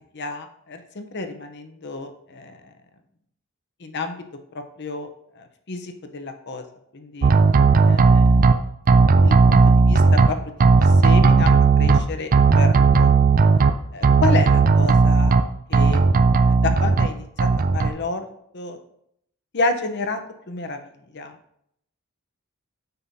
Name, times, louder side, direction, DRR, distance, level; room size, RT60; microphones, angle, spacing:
voice 1, 0.1-2.6 3.8-4.2 4.5-5.1 5.4-6.6 6.9-7.3 7.8-8.3 9.2-11.5 11.8-13.1 13.9-15.3 15.7-16.0 16.5-18.3 18.5-18.8 19.5-20.2 20.5-20.8 21.1-21.4, left 3 dB, 55° left, 7 dB, 0.9 m, -30 dB
sound 1, 7.2-8.5 8.9-10.3 10.6-12.0 12.3-13.7 14.0-15.4 15.7-17.1 17.4-17.9, right 4 dB, 40° right, 0.4 m, -15 dB
9.3 x 5.7 x 2.8 m, 0.71 s
head